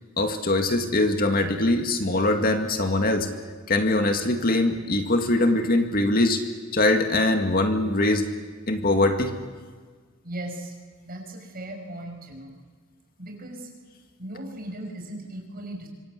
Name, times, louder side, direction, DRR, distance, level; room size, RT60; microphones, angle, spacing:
voice 1, 0.2-3.3 3.7-6.4 6.7-8.2 8.7-9.3, left 2 dB, 45° left, 5 dB, 2.2 m, -22 dB
voice 2, 10.2-10.8 11.0-12.6 13.2-13.7 14.2-15.9, right 1 dB, 45° right, 2 dB, 6.4 m, -37 dB
25.5 x 25.0 x 8.4 m, 1.5 s
head